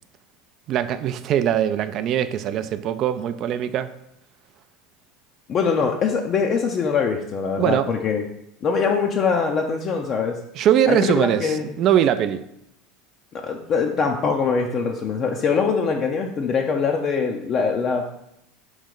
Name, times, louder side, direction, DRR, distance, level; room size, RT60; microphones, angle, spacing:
voice 1, 0.7-3.9 7.6-7.9 10.5-12.4, right 10 dB, 50° right, 12 dB, 0.3 m, -21 dB
voice 2, 5.5-8.2 8.6-10.4 10.9-11.7 13.3-18.1, left 5 dB, 45° left, 2 dB, 0.4 m, -23 dB
4.2 x 3.1 x 3.8 m, 0.79 s
hypercardioid pair, 90°, 0 cm